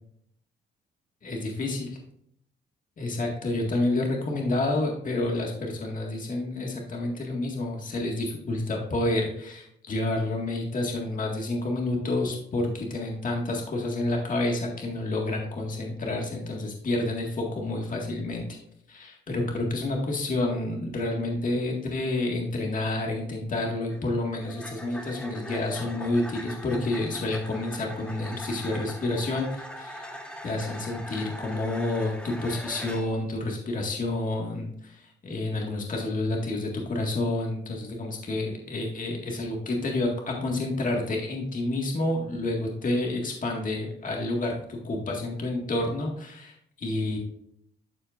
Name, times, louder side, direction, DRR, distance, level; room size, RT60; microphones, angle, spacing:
voice 1, 1.2-2.0 3.0-18.6 18.9-47.2, left 2 dB, 40° left, 0 dB, 1.9 m, -29 dB
sound 1, 23.8-33.2, equal, 5° left, 1.3 m, -41 dB
12.5 x 4.4 x 2.5 m, 0.70 s
cardioid pair, 90°, 20 cm